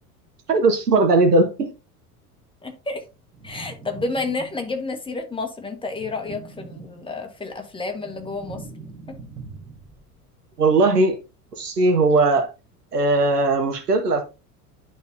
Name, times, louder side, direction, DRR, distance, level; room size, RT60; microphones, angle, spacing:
voice 1, 0.5-1.7 10.6-11.2 11.6-12.5 12.9-14.2, right 3 dB, 80° right, 1.5 m, -18 dB
voice 2, 2.6-3.0 3.4-8.6, left 3 dB, 10° left, 1.5 m, -30 dB
sound 1, 3.3-4.9 5.9-7.4 7.7-10.1, right 4 dB, 5° right, 3.4 m, -42 dB
10.5 x 4.0 x 2.6 m
figure-of-eight pair, 75°, 46 cm